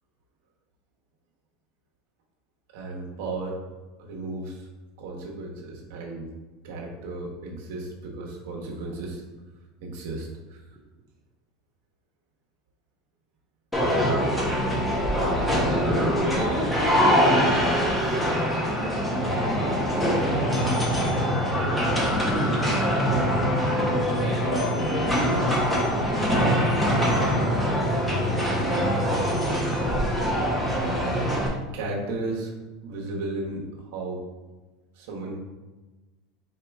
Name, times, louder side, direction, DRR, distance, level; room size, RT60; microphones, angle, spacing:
voice 1, 2.7-3.6 4.0-4.7 5.0-6.3 6.6-9.2 9.8-10.6 31.7-32.5 32.8-34.2 34.9-35.4, right 2 dB, 70° right, -1 dB, 1.1 m, -34 dB
sound 1, 13.7-31.5, equal, 5° left, 0.9 m, -23 dB
voice 2, 13.8-14.4 16.3-18.2 18.6-21.4, right 1 dB, 15° right, -1 dB, 0.5 m, -35 dB
4.4 x 2.9 x 3.4 m, 1.2 s
supercardioid pair, 135°, 0 cm